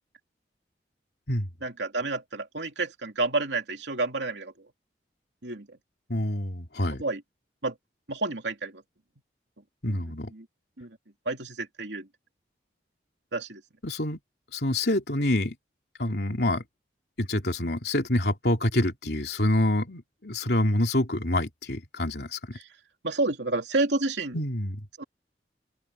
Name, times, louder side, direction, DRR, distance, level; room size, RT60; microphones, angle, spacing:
voice 1, 1.6-4.7 5.4-5.8 7.0-7.2 7.6-7.8 8.1-8.8 9.9-10.0 10.3-10.5 10.8-11.0 11.2-12.1 13.3-13.6 22.6-22.7 23.0-24.4 25.0-25.1, right 2 dB, 80° right, 2.8 m, -30 dB
voice 2, 6.1-7.0 9.8-10.3 13.8-14.2 14.5-15.5 16.0-16.6 17.2-22.6 24.3-24.9, left 1 dB, 65° left, 3.0 m, -27 dB
open air
head